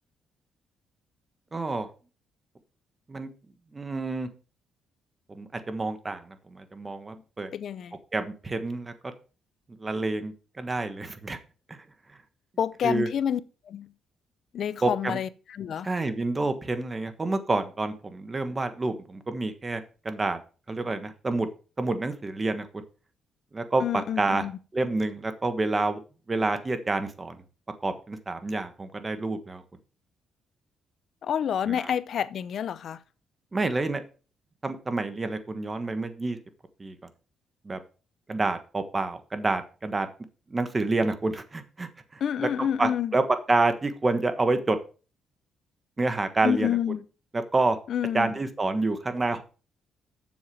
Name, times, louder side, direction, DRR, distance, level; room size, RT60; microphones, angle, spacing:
voice 1, 1.5-1.9 3.1-3.3 3.7-4.3 5.3-7.5 8.1-8.9 9.8-11.4 11.7-11.8 12.8-13.1 14.8-15.2 15.8-20.4 20.7-21.5 21.8-22.8 23.5-23.8 24.2-24.4 24.7-26.0 26.3-27.4 27.8-29.6 31.7-31.8 33.5-34.0 34.6-36.4 36.8-36.9 37.6-37.8 38.3-40.1 40.5-42.2 42.8-43.2 43.5-44.8 46.0-46.7 47.5-47.8 48.1-49.4, right 3 dB, 25° right, 1.3 m, -28 dB
voice 2, 7.5-8.0 12.6-13.4 13.7-13.9 14.5-15.9 23.8-24.5 31.2-33.0 42.2-43.1 46.4-47.0 47.9-48.3, left 9 dB, 65° left, 0.6 m, -28 dB
7.3 x 7.1 x 4.9 m
cardioid pair, 90°, 0 cm